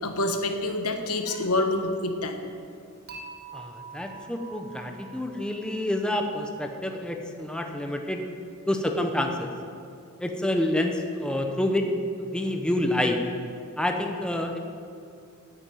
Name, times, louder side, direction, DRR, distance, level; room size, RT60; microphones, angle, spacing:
voice 1, 0.0-2.4, left 2 dB, 85° left, 5 dB, 1.4 m, -27 dB
Dishes pots and pans / Chink clink, 3.1-6.2, right 4 dB, 45° right, 1.7 m, -45 dB
voice 2, 3.5-8.2 8.7-9.5 10.2-11.8 12.2-13.2 13.8-14.6, left 1 dB, 5° left, 3 dB, 0.9 m, -28 dB
10.5 x 8.9 x 9.2 m, 2.4 s
head